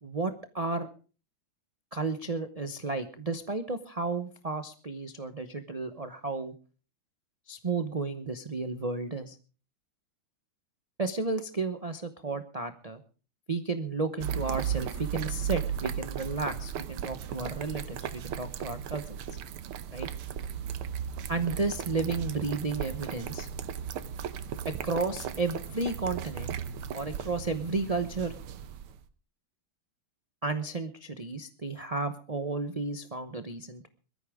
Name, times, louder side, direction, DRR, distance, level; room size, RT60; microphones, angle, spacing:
voice 1, 0.0-0.9 1.9-6.5 7.5-9.4 11.0-13.0 13.5-19.2 19.9-20.1 21.3-23.5 24.6-26.5 26.9-28.3 30.4-33.9, right 3 dB, 50° right, 8 dB, 0.4 m, -33 dB
sound 1, 14.2-29.0, right 9 dB, 90° right, 1.8 m, -36 dB
22.0 x 14.0 x 3.6 m, 0.36 s
omnidirectional pair, 2.3 m